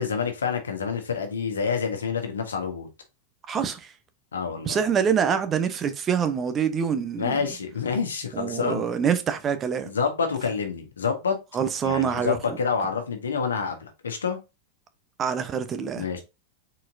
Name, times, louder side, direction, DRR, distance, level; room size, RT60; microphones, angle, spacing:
voice 1, 0.0-2.9 4.3-4.8 7.2-8.8 9.8-11.3 11.8-14.4 15.9-16.2, left 6 dB, 85° left, 1.3 m, -28 dB
voice 2, 3.5-3.9 4.7-7.5 8.3-9.9 11.5-12.6 15.2-16.1, right 7 dB, 30° right, 0.8 m, -25 dB
4.3 x 4.3 x 2.6 m
hypercardioid pair, 95°, 0 cm